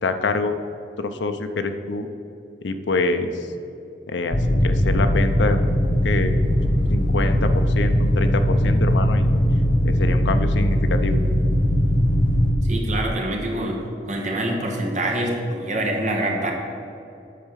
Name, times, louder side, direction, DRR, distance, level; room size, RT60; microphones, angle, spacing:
voice 1, 0.0-0.5 1.0-2.1 2.6-3.3 4.1-5.6 6.0-6.3 6.9-9.3 9.8-11.2, left 3 dB, 80° left, 8 dB, 0.6 m, -25 dB
sound 1, 4.3-12.5, equal, 45° left, 1.0 m, -19 dB
voice 2, 12.7-13.8 14.1-16.5, right 1 dB, 40° right, 0 dB, 1.3 m, -25 dB
8.4 x 4.6 x 7.4 m, 2.7 s
head